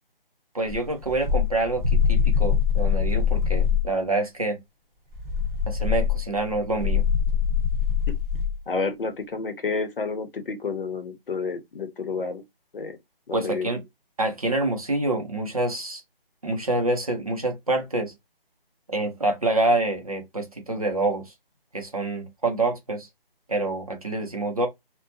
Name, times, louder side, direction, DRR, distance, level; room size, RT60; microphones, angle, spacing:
voice 1, 0.5-4.6 5.7-7.0 13.3-13.8 14.2-16.0 16.4-18.1 18.9-21.3 21.7-23.1 23.5-24.7, right 2 dB, 40° right, 0.6 m, -26 dB
sound 1, 0.7-3.9 5.1-8.6, left 7 dB, 5° left, 1.0 m, -23 dB
voice 2, 8.7-12.4 12.7-13.0 13.3-13.7, left 4 dB, 65° left, 0.8 m, -30 dB
2.7 x 2.1 x 2.7 m
figure-of-eight pair, 175°, 30 cm